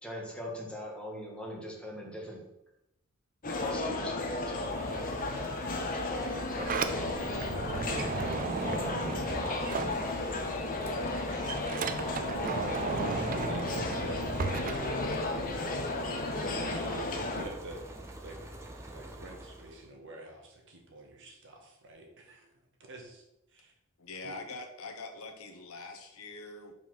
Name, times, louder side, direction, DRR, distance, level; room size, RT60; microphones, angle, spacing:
voice 1, 0.0-2.4 3.5-4.8 5.3-5.5 5.9-7.3 7.9-8.5, equal, 5° left, -2 dB, 1.8 m, -42 dB
sound 1, 3.4-17.4, left 2 dB, 40° left, 1.0 m, -34 dB
sound 2, 4.1-19.9, right 1 dB, 15° right, 0.8 m, -45 dB
Sliding door, 6.2-10.5 10.9-15.6, right 4 dB, 40° right, 0.4 m, -36 dB
voice 2, 9.0-12.0 12.3-12.6 12.9-18.4 18.9-23.2 23.5-23.7 24.2-24.4, right 1 dB, 60° right, 1 dB, 1.6 m, -47 dB
voice 3, 24.0-26.7, left 3 dB, 70° left, 5 dB, 1.0 m, -43 dB
5.5 x 4.8 x 5.9 m, 0.87 s
head